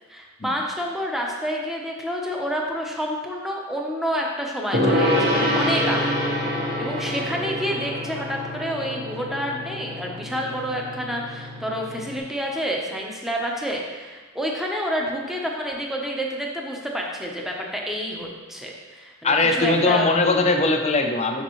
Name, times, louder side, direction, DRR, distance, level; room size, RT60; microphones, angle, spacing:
voice 1, 0.1-6.2 6.8-20.1, equal, ahead, -1 dB, 0.8 m, -28 dB
Gong, 4.7-12.2, left 1 dB, 55° right, 1.7 m, -26 dB
voice 2, 19.2-21.4, left 3 dB, 30° left, 4 dB, 0.6 m, -20 dB
6.7 x 6.6 x 3.1 m, 1.3 s
head